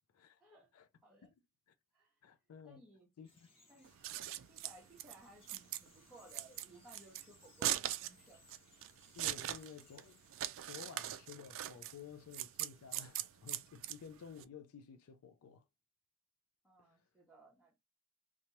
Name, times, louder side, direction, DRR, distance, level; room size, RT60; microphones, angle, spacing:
voice 1, 0.4-0.7 1.0-1.3 1.9-2.2 2.6-3.1 3.7-3.9 4.5-8.4 16.6-17.8, right 2 dB, 5° right, 0.9 m, -60 dB
voice 2, 2.2-2.8 3.2-3.5 9.1-10.2 10.6-15.6 16.8-17.0, left 7 dB, 80° left, 0.4 m, -53 dB
Bird vocalization bird call bird song, 3.2-12.1, left 2 dB, 25° left, 1.2 m, -68 dB
Scissors, 3.8-14.4, right 13 dB, 65° right, 0.3 m, -41 dB
2.8 x 2.3 x 2.9 m
head